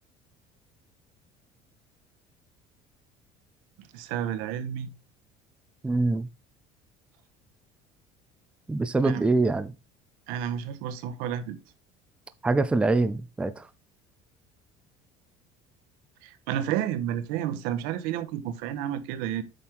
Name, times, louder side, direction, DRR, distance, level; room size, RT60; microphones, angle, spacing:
voice 1, 3.9-4.9 9.0-9.2 10.3-11.6 16.2-19.4, right 10 dB, 85° right, 1.3 m, -31 dB
voice 2, 5.8-6.3 8.7-9.7 12.4-13.7, right 3 dB, 5° right, 0.5 m, -24 dB
8.5 x 6.2 x 3.6 m
cardioid pair, 160°, 14 cm